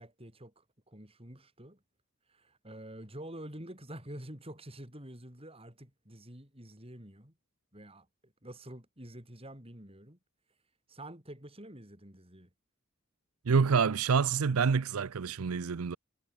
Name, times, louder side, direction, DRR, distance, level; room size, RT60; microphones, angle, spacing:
voice 1, 0.0-1.8 2.3-7.3 7.7-10.2 10.9-12.5, right 1 dB, 25° right, 7.2 m, -48 dB
voice 2, 13.5-16.0, right 5 dB, 90° right, 0.6 m, -27 dB
head